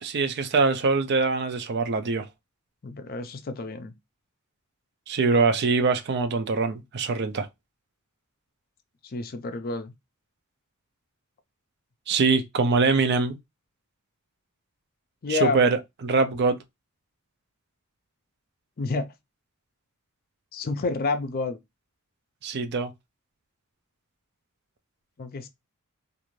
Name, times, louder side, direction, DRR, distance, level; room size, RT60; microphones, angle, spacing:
voice 1, 0.0-2.3 5.1-7.5 12.1-13.4 15.3-16.6 22.4-22.9, right 4 dB, 50° right, 0.5 m, -23 dB
voice 2, 2.8-3.9 9.1-9.9 15.2-15.6 18.8-19.1 20.5-21.6 25.2-25.5, left 3 dB, 45° left, 0.4 m, -29 dB
2.5 x 2.5 x 3.0 m
head